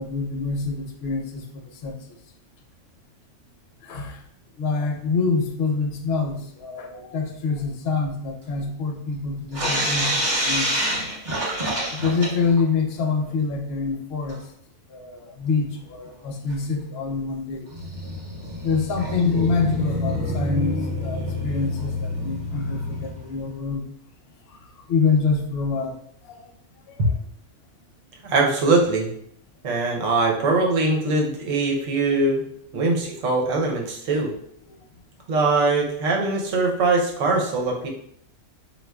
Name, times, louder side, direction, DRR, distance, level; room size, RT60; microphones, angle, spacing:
voice 1, 0.0-2.0 3.8-4.2 4.6-10.8 11.3-11.5 11.9-14.4 14.9-17.7 18.6-23.8 24.5-24.6 24.9-26.0 26.3-26.4 29.8-29.9 32.1-32.2 32.7-32.8 34.7-34.8, left 4 dB, 65° left, 4 dB, 0.7 m, -26 dB
sound 1, 9.5-12.6 12.9-13.0 13.3-13.4 14.3-14.4 15.4-15.5 16.1-16.2 16.5-16.6 17.7-23.3, equal, 45° right, 0.9 m, -27 dB
voice 2, 28.2-29.1 29.6-32.4 32.7-34.3 35.3-37.9, right 3 dB, 90° right, 0 dB, 1.1 m, -22 dB
4.3 x 2.3 x 2.2 m, 0.69 s
omnidirectional pair, 1.3 m